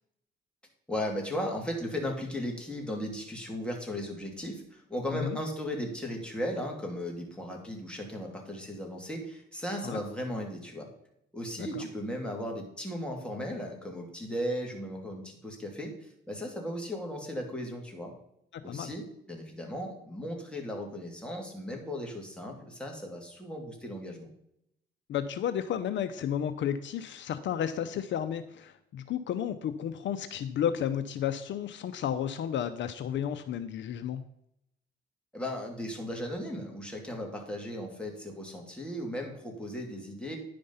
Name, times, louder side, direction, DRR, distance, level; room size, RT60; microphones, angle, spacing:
voice 1, 0.9-10.9 11.3-18.1 18.6-24.3 35.3-40.4, equal, 5° left, 0 dB, 2.8 m, -36 dB
voice 2, 11.6-11.9 18.5-18.9 25.1-34.2, left 9 dB, 65° left, 10 dB, 0.6 m, -32 dB
10.5 x 5.1 x 5.6 m, 0.77 s
cardioid pair, 90°, 20 cm